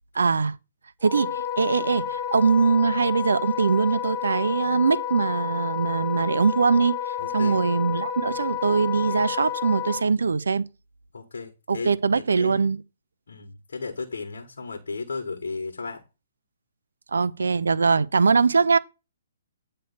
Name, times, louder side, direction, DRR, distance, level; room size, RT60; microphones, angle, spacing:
voice 1, 0.1-0.5 1.0-7.0 7.3-10.6 11.7-12.8 17.1-18.8, right 4 dB, 85° right, 0.5 m, -22 dB
Wind instrument woodwind instrument, 1.0-10.0, left 9 dB, 25° left, 1.5 m, -30 dB
voice 2, 7.2-7.6 11.1-12.7 13.3-16.0, left 4 dB, 80° left, 1.4 m, -35 dB
9.2 x 3.3 x 6.6 m
hypercardioid pair, 140°, 0 cm